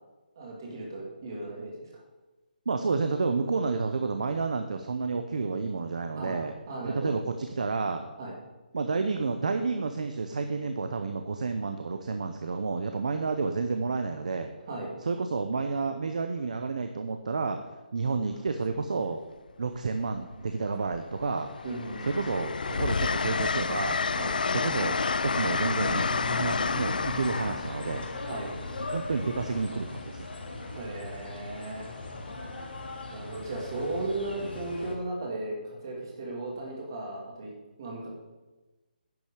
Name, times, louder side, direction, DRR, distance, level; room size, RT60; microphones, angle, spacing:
voice 1, 0.4-2.0 6.2-6.4 6.7-7.1 8.2-8.3 14.7-14.9 21.6-22.2 24.1-24.3 28.2-28.5 30.6-31.9 33.1-37.5 37.8-38.1, right 2 dB, 25° right, -2 dB, 2.4 m, -36 dB
voice 2, 2.7-6.5 6.8-8.1 8.7-14.5 15.0-17.6 17.9-19.2 19.6-21.5 22.0-24.0 24.5-25.0 25.2-28.1 28.9-30.3, right 4 dB, 45° right, 7 dB, 0.8 m, -30 dB
Train, 18.2-18.5 19.8-20.5 20.9-29.7 31.3-31.5, left 4 dB, 60° left, 0.4 m, -30 dB
sound 1, 25.7-35.0, left 2 dB, 85° left, 2.5 m, -39 dB
10.5 x 6.5 x 6.6 m, 1.2 s
hypercardioid pair, 180°, 5 cm